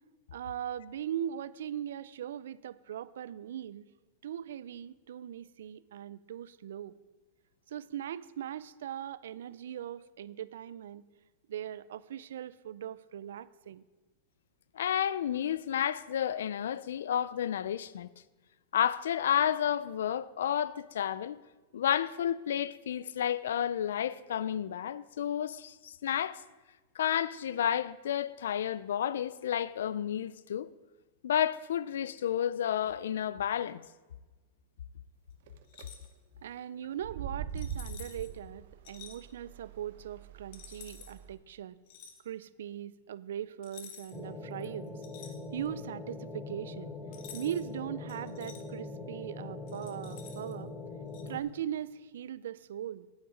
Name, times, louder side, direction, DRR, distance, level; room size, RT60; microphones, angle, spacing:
voice 1, 0.3-3.8 4.2-6.9 7.7-11.0 11.5-13.8 36.4-41.8 42.2-45.0 45.5-46.9 47.3-50.7 51.3-53.1, right 10 dB, 80° right, 0.4 m, -40 dB
voice 2, 14.7-18.1 18.7-21.4 21.7-26.4 27.0-30.7 31.2-33.8, left 9 dB, 90° left, 0.4 m, -31 dB
sound 1, 35.5-35.8 36.9-41.3, right 8 dB, 65° right, 0.8 m, -43 dB
sound 2, 35.6-36.1 37.5-38.3 38.8-39.2 40.5-41.1 41.9-42.2 43.6-44.2 44.6-45.8 47.1-47.7 48.1-48.6 49.7-50.5 51.1-51.3, left 8 dB, 50° left, 1.4 m, -50 dB
sound 3, 44.1-51.4, left 2 dB, 10° left, 0.7 m, -42 dB
9.5 x 8.6 x 5.1 m
supercardioid pair, 155°, 0 cm